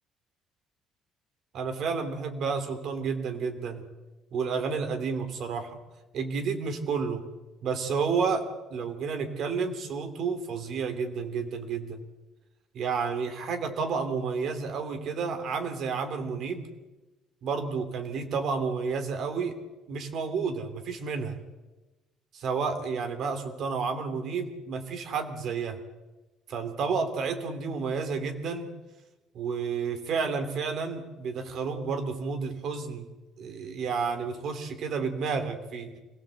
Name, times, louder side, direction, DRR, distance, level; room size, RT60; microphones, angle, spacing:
voice 1, 1.5-3.8 4.3-5.8 6.1-7.2 7.6-8.4 8.7-12.0 12.7-16.7 17.4-19.6 19.9-21.4 22.3-25.8 26.5-28.7 29.3-33.1 33.4-35.9, right 5 dB, 50° right, 7 dB, 3.0 m, -31 dB
26.0 x 17.0 x 7.8 m, 1.1 s
cardioid pair, 160°, 0 cm